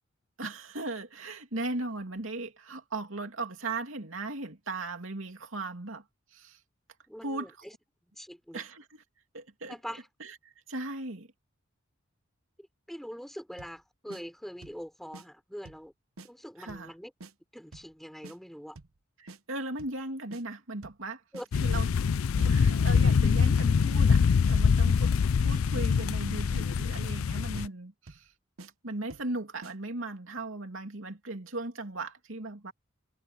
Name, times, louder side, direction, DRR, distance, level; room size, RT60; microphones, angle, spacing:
voice 1, 0.4-6.0 6.3-6.6 7.2-7.5 8.5-9.0 9.3-9.7 10.2-10.3 10.7-11.3 16.6-16.9 19.2-21.2 21.6-21.9 22.4-25.1 25.4-28.3 28.8-32.7, right 2 dB, 70° right, 2.9 m, -37 dB
voice 2, 7.1-7.7 8.1-8.6 9.7-10.1 12.6-15.9 16.2-17.1 17.5-18.8 21.3-21.5, equal, ahead, 4.0 m, -43 dB
sound 1, 13.6-13.8 14.1-14.2 14.6-14.8 15.1-15.3 15.6-15.9 16.2-16.3 16.7-16.9 17.2-17.3 17.7-17.9 18.2-18.4 18.8-19.0 19.3-19.4 19.8-20.0 20.3-20.4 20.8-21.0 21.3-21.5 21.9-22.1 22.4-22.5 22.9-23.1 23.4-23.5 23.9-24.1 24.4-24.6 25.0-25.2 25.5-25.6 26.0-26.2 26.5-26.6 27.0-27.3 27.5-27.7 28.1-28.3 28.6-28.7 29.1-29.3 29.6-29.7, right 2 dB, 85° right, 1.0 m, -48 dB
sound 2, 21.5-27.7, left 6 dB, 80° left, 0.4 m, -24 dB
head